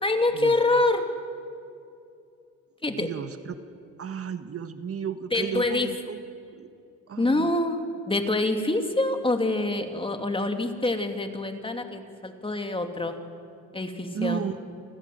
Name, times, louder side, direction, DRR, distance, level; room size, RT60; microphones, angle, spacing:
voice 1, 0.0-1.1 2.8-3.1 5.3-5.9 7.2-13.2 13.7-14.4, left 2 dB, 15° left, 5 dB, 2.7 m, -26 dB
voice 2, 2.9-3.5 4.0-6.2 6.6-6.7 7.1-7.5 14.1-14.5, right 7 dB, 50° right, 9 dB, 1.5 m, -33 dB
30.0 x 20.5 x 7.9 m, 2.5 s
cardioid pair, 90°, 30 cm